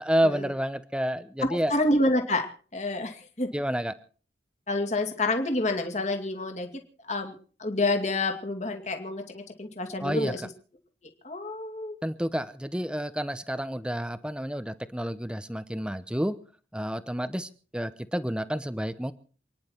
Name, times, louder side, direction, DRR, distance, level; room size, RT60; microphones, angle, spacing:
voice 1, 0.0-1.7 3.5-3.9 10.0-10.3 12.0-16.4 16.7-19.1, equal, 5° right, 12 dB, 0.8 m, -29 dB
voice 2, 1.4-2.5 2.7-3.5 4.7-6.7 7.1-7.3 7.6-10.4 11.2-12.0, left 2 dB, 40° left, 5 dB, 2.2 m, -28 dB
28.5 x 10.5 x 4.5 m, 0.41 s
head